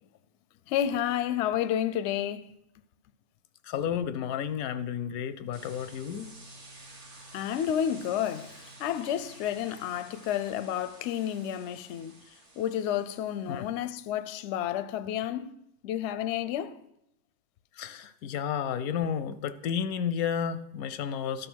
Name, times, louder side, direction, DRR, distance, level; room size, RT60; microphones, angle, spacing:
voice 1, 0.7-2.4 7.3-12.1 12.6-15.5 15.8-16.8, left 10 dB, 65° left, 0.7 m, -30 dB
voice 2, 3.7-6.3 13.5-13.6 17.8-21.5, left 8 dB, 90° left, 1.1 m, -32 dB
sound 1, 5.5-13.7, right 2 dB, 55° right, 1.9 m, -51 dB
12.5 x 5.2 x 6.2 m
omnidirectional pair, 1.5 m